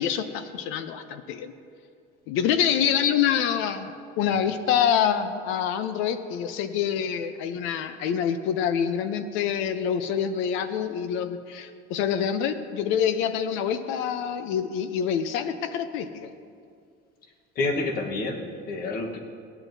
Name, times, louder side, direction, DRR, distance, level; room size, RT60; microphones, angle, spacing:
voice 1, 0.0-1.5 2.3-3.9 4.2-16.3, left 8 dB, 70° left, 10 dB, 0.6 m, -26 dB
voice 2, 17.5-19.2, left 2 dB, 45° left, 3 dB, 1.2 m, -28 dB
16.5 x 9.0 x 2.7 m, 2.3 s
cardioid pair, 150°, 21 cm